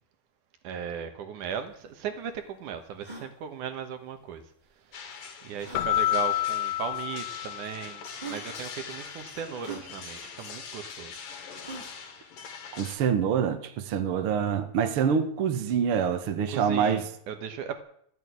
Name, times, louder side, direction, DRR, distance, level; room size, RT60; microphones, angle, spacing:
voice 1, 0.6-4.4 5.4-11.2 16.5-17.8, right 7 dB, 75° right, 2.8 m, -37 dB
sound 1, 1.4-1.5 1.7-1.8 2.3-2.4 2.9-3.3 4.6-4.7 5.6-5.9 6.9-7.0 7.8-7.9 8.2-8.5 9.6-9.9 11.6-12.0, right 4 dB, 15° right, 2.7 m, -41 dB
sound 2, 4.9-12.9, left 6 dB, 90° left, 3.7 m, -43 dB
Keyboard (musical), 5.7-8.1, left 14 dB, 70° left, 1.8 m, -29 dB
voice 2, 12.7-17.1, right 7 dB, 55° right, 1.9 m, -26 dB
13.0 x 9.0 x 9.5 m
omnidirectional pair, 3.7 m